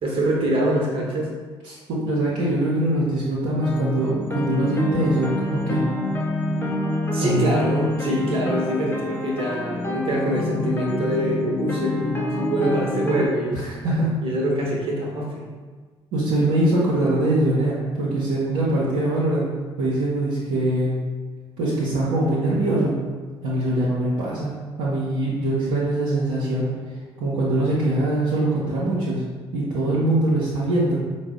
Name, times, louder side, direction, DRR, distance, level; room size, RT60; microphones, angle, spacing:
voice 1, 0.0-1.3 7.1-13.6 14.2-15.5, right 1 dB, 40° right, -2 dB, 0.9 m, -24 dB
voice 2, 1.6-5.8 7.2-7.5 13.5-14.1 16.1-21.0 21.6-23.0 23.4-24.5 24.8-26.7 27.2-29.2 29.5-30.9, right 1 dB, 65° right, -7 dB, 0.7 m, -23 dB
sound 1, 3.6-13.3, left 1 dB, 15° left, 0.6 m, -26 dB
4.9 x 2.0 x 3.6 m, 1.4 s
figure-of-eight pair, 45°, 14 cm